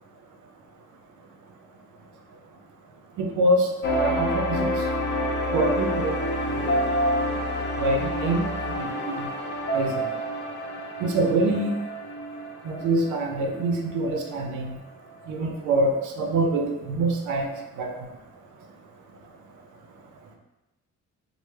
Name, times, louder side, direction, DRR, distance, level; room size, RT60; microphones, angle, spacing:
voice 1, 3.2-4.7 5.5-6.2 6.6-6.8 7.8-9.3 9.7-10.0 11.0-11.8 12.6-14.8 15.3-17.5 17.8-17.9, right 2 dB, 80° right, 3 dB, 0.5 m, -25 dB
sound 1, 3.8-14.3 14.7-14.8 15.3-15.4, equal, 35° left, 0.5 m, -28 dB
3.2 x 2.1 x 3.1 m, 1.0 s
cardioid pair, 90°, 30 cm